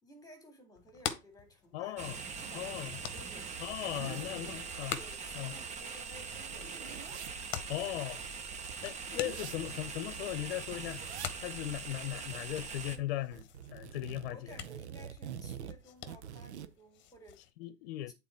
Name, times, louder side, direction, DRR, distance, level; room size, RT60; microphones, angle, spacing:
voice 1, 0.0-3.5 4.0-7.4 14.3-17.4 18.1-18.2, equal, 10° left, 2.2 m, -56 dB
sound 1, 0.8-17.5, left 10 dB, 35° left, 1.1 m, -47 dB
voice 2, 1.7-2.2 2.5-3.0 3.6-5.0 5.3-5.5 7.7-8.2 8.8-11.0 11.3-14.5 17.6-18.1, left 14 dB, 60° left, 0.8 m, -38 dB
sound 2, 2.0-13.0, right 5 dB, 20° right, 1.0 m, -42 dB
sound 3, 3.4-5.1 5.4-5.5 5.8-10.1 10.7-11.4 11.6-11.8 12.1-13.0 13.3-16.7, right 9 dB, 90° right, 1.0 m, -47 dB
8.3 x 4.1 x 4.4 m
supercardioid pair, 135°, 33 cm